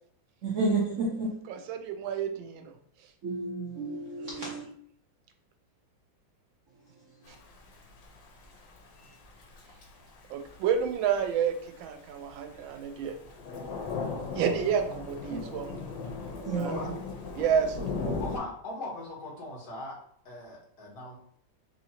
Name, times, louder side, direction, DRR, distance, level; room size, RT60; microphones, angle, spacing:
voice 1, 0.4-1.3 3.2-4.7 15.3-15.4 16.5-17.0, right 3 dB, 60° right, -4 dB, 0.8 m, -30 dB
voice 2, 1.5-2.7 4.2-4.6 10.3-13.1 14.3-15.8 16.5-16.7 17.4-17.8, right 7 dB, 90° right, 6 dB, 1.3 m, -30 dB
Thunder / Rain, 7.2-18.4, left 4 dB, 85° left, 1.6 m, -38 dB
voice 3, 18.2-20.0 20.3-21.2, left 2 dB, 60° left, -4 dB, 1.9 m, -40 dB
4.4 x 2.8 x 2.8 m, 0.63 s
omnidirectional pair, 2.1 m